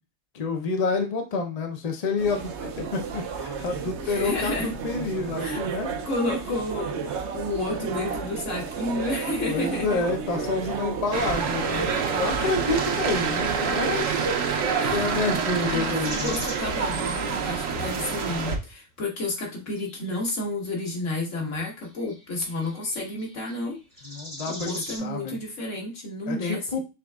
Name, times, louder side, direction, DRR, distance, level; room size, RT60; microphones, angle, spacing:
voice 1, 0.3-5.9 9.5-14.3 14.9-16.3 24.0-25.4 26.3-26.8, left 3 dB, 40° left, 3 dB, 0.7 m, -28 dB
sound 1, 2.2-14.0, right 6 dB, 65° right, 0.9 m, -33 dB
voice 2, 4.0-4.7 5.4-5.6 6.1-10.0 12.4-12.5 14.8-15.0 15.6-23.8 24.5-26.7, left 2 dB, 75° left, -1 dB, 1.7 m, -31 dB
sound 2, 11.1-18.6, right 6 dB, 90° right, 1.1 m, -27 dB
sound 3, 16.0-16.8 17.7-18.4 19.8-20.4 21.5-25.0, left 1 dB, 5° left, 1.6 m, -40 dB
6.0 x 3.5 x 2.3 m, 0.28 s
omnidirectional pair, 1.3 m